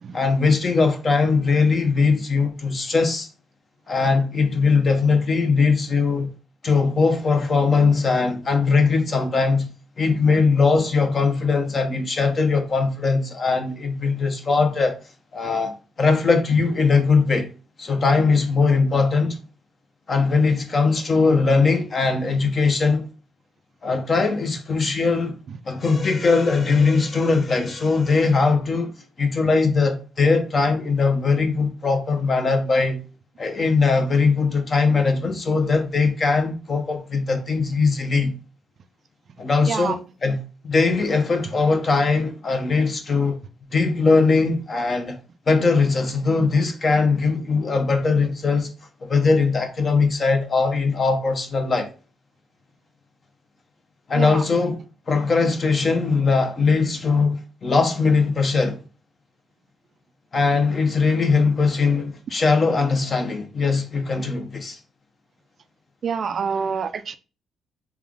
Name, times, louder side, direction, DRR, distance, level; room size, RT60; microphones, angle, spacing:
voice 1, 0.1-3.3 3.9-6.3 6.6-9.7 10.0-14.9 15.3-15.7 16.0-17.5 17.8-19.4 20.1-23.1 23.8-25.4 25.7-28.9 29.2-33.0 33.4-38.3 39.4-40.4 40.6-43.4 43.7-45.2 45.5-48.7 49.0-51.9 54.1-58.8 60.3-64.8, left 4 dB, 40° left, 0.8 m, -20 dB
voice 2, 66.0-67.1, right 6 dB, 55° right, 0.3 m, -26 dB
3.4 x 2.3 x 3.6 m
cardioid pair, 90°, 0 cm